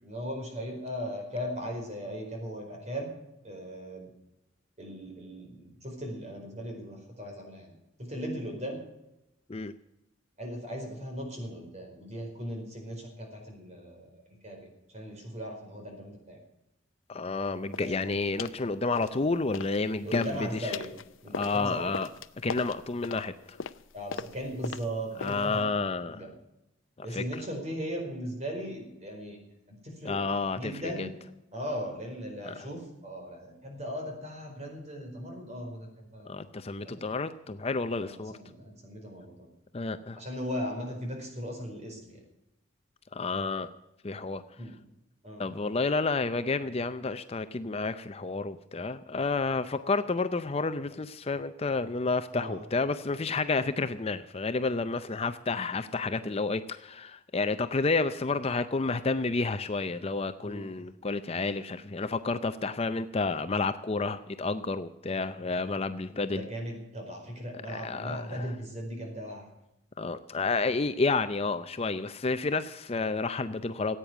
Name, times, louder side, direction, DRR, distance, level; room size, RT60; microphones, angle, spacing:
voice 1, 0.0-3.1 3.4-4.1 4.8-7.7 8.0-8.8 10.4-14.1 14.4-16.4 17.8-18.1 20.0-20.9 21.2-21.9 23.9-25.8 26.1-26.3 27.0-29.4 29.8-30.1 30.5-31.1 31.5-36.6 36.8-37.0 38.0-39.5 40.2-42.2 44.6-44.8 45.2-45.5 52.3-52.6 60.4-60.7 66.3-69.4, equal, 35° right, 2 dB, 4.7 m, -38 dB
voice 2, 17.1-20.8 21.3-22.1 22.4-23.6 25.2-26.3 27.0-27.4 30.0-31.1 32.4-32.7 36.2-38.3 39.7-40.2 43.1-43.7 44.0-44.4 45.4-66.5 67.7-68.5 70.0-74.0, left 3 dB, 30° left, 10 dB, 0.5 m, -30 dB
sound 1, 17.7-18.0 18.4-18.6 18.9-19.8 20.1-25.6, left 5 dB, 75° left, 0.6 m, -40 dB
15.5 x 8.9 x 8.1 m, 0.89 s
head